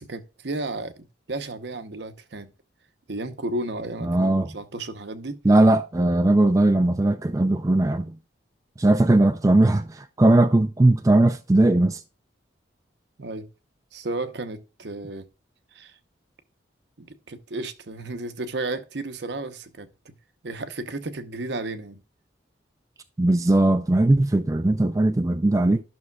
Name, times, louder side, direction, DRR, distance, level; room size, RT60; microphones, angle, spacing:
voice 1, 0.0-2.5 3.1-5.4 13.2-13.5 13.9-15.3 15.7-16.0 17.0-20.1 20.4-22.0, right 2 dB, 65° right, 0.8 m, -33 dB
voice 2, 4.0-4.5 5.4-8.1 8.8-12.0 23.2-25.8, right 2 dB, 15° right, 0.4 m, -19 dB
12.0 x 6.2 x 2.3 m
head